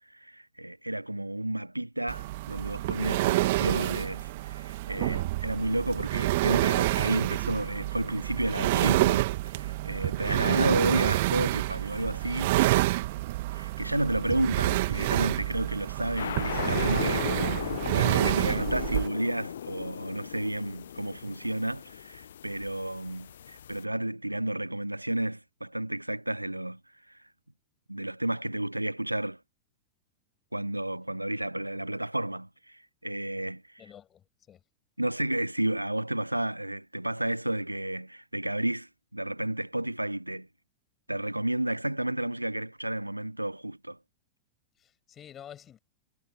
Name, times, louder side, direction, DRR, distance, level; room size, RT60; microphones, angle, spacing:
voice 1, 0.1-12.6 13.5-26.8 27.1-27.2 27.9-29.4 30.5-33.8 35.0-40.5 41.1-44.0, right 1 dB, 85° right, 1.0 m, -31 dB
sound 1, 2.1-19.1, right 18 dB, 50° right, 2.0 m, -28 dB
sound 2, 16.2-23.8, left 9 dB, 65° left, 1.0 m, -36 dB
voice 2, 33.8-34.6 44.8-45.8, left 10 dB, 25° left, 6.8 m, -49 dB
figure-of-eight pair, 90°, 0 cm